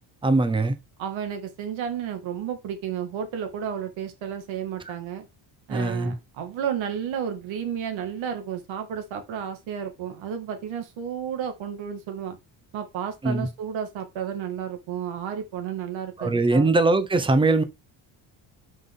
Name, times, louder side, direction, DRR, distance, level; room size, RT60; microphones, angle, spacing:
voice 1, 0.2-0.8 5.7-6.1 13.2-13.5 16.2-17.6, right 2 dB, 10° right, 0.7 m, -21 dB
voice 2, 1.0-5.3 5.7-12.4 12.7-16.7, right 8 dB, 75° right, 2.2 m, -32 dB
5.9 x 5.5 x 3.7 m
cardioid pair, 160°, 47 cm